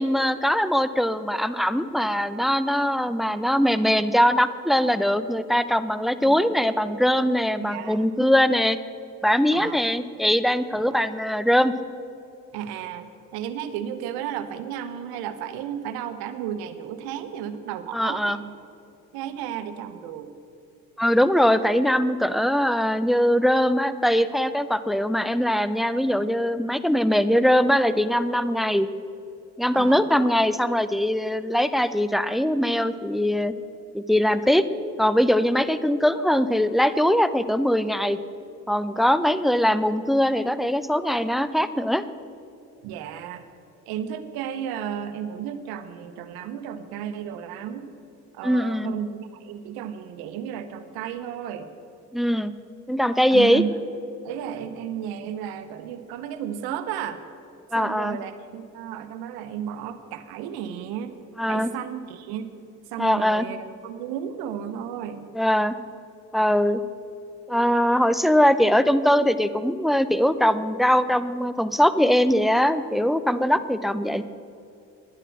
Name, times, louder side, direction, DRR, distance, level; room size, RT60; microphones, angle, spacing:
voice 1, 0.0-8.8 9.2-11.7 17.9-18.4 21.0-28.9 29.6-33.5 33.9-34.7 35.0-38.2 38.7-42.0 48.4-48.9 52.1-52.5 52.9-53.6 57.7-58.2 61.4-61.7 63.0-63.5 65.3-65.8 66.3-66.8 67.5-74.2, equal, ahead, 13 dB, 0.6 m, -21 dB
voice 2, 7.6-8.1 9.5-9.8 10.7-11.0 12.5-18.5 19.1-20.3 29.7-30.0 42.8-43.4 43.9-47.9 48.3-51.7 53.3-53.8 54.2-57.2 57.7-61.2 61.5-62.5 62.9-65.3, right 9 dB, 80° right, 11 dB, 1.0 m, -33 dB
10.5 x 10.0 x 7.2 m, 2.6 s
hypercardioid pair, 55°, 37 cm